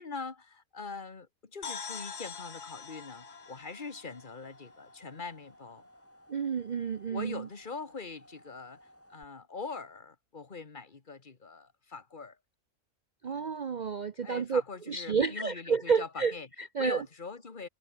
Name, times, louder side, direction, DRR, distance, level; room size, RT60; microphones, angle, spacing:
voice 1, 0.0-5.8 7.1-8.8 9.1-12.4 13.3-13.6 14.2-16.5 16.8-17.7, left 4 dB, 30° left, 1.8 m, -43 dB
sound 1, 1.6-5.3, left 6 dB, 85° left, 2.5 m, -44 dB
sound 2, 2.9-9.2, equal, 10° left, 6.6 m, -59 dB
voice 2, 6.3-7.5 13.2-14.6 14.9-17.1, right 5 dB, 65° right, 0.4 m, -30 dB
omnidirectional pair, 1.6 m